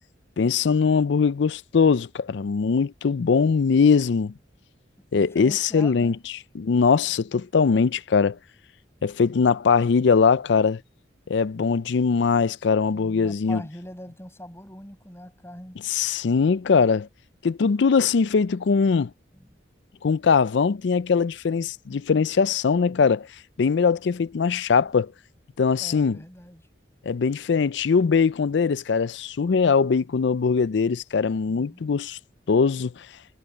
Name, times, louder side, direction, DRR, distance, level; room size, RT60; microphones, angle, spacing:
voice 1, 0.4-4.3 5.1-6.1 6.5-8.4 9.0-10.8 11.3-13.6 15.8-17.1 17.4-19.1 20.0-23.3 23.6-25.1 25.6-26.2 27.1-32.2 32.5-32.9, left 5 dB, 65° left, 0.4 m, -21 dB
voice 2, 5.1-6.2 12.9-15.8 19.4-19.5 25.8-26.6 31.5-32.0, left 1 dB, 15° left, 6.2 m, -42 dB
head